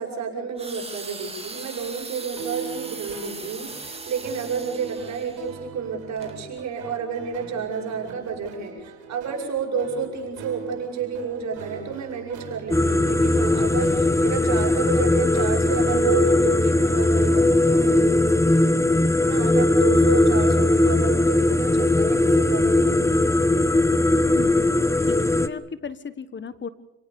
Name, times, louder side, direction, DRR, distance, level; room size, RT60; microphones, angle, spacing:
voice 1, 0.0-18.7 19.2-23.1, right 6 dB, 65° right, 1 dB, 7.8 m, -30 dB
sound 1, 0.6-5.5 6.2-6.3, right 3 dB, 20° right, 3.6 m, -39 dB
sound 2, 2.4-17.6, right 6 dB, 90° right, 4.8 m, -40 dB
sound 3, 12.7-25.5, left 2 dB, 10° left, 1.1 m, -19 dB
voice 2, 24.3-24.7 25.1-26.7, left 6 dB, 40° left, 14 dB, 1.4 m, -35 dB
29.0 x 18.0 x 7.1 m, 0.86 s
cardioid pair, 90°, 30 cm